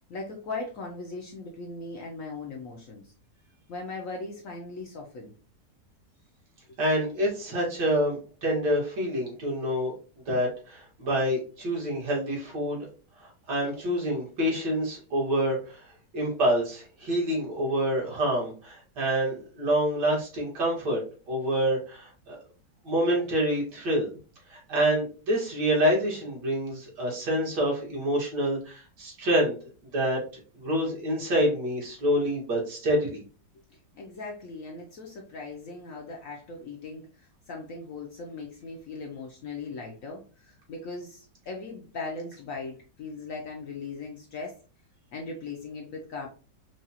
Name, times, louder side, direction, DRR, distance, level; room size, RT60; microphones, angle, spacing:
voice 1, 0.1-3.1 3.7-5.3 33.9-44.6 45.1-46.3, left 3 dB, 65° left, 0 dB, 0.9 m, -39 dB
voice 2, 6.8-9.9 10.3-12.8 13.2-15.9 16.1-21.0 21.3-22.4 22.8-24.1 24.5-29.6 29.9-30.2 30.5-33.2, equal, 70° right, -4 dB, 2.2 m, -27 dB
4.8 x 2.3 x 2.7 m, 0.37 s
omnidirectional pair, 1.9 m